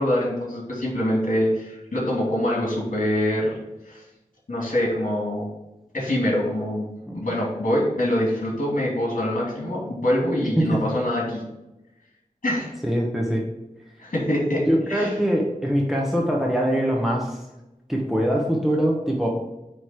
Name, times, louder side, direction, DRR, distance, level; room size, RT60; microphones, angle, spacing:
voice 1, 0.0-3.6 3.9-4.0 4.5-5.5 5.9-6.9 7.1-11.4 12.4-12.7 14.0-15.1, left 1 dB, 65° left, -4 dB, 2.6 m, -24 dB
voice 2, 12.8-13.4 14.7-17.4 17.9-19.3, equal, ahead, -1 dB, 1.0 m, -22 dB
9.1 x 3.3 x 4.5 m, 0.98 s
wide cardioid pair, 65°, 14 cm